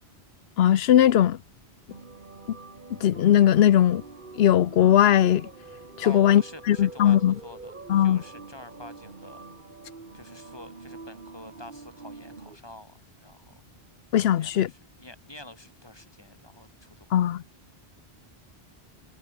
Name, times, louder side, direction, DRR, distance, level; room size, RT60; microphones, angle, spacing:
voice 1, 0.6-1.4 3.0-4.0 4.4-5.5 6.1-6.4 6.7-7.3 7.9-8.2 14.1-14.7 17.1-17.4, left 11 dB, 80° left, 0.9 m, -19 dB
sound 1, 1.9-12.6, right 3 dB, 50° right, 2.1 m, -45 dB
voice 2, 6.0-9.4 10.1-13.6 14.3-17.2, left 1 dB, 25° left, 2.1 m, -47 dB
omnidirectional pair, 1.1 m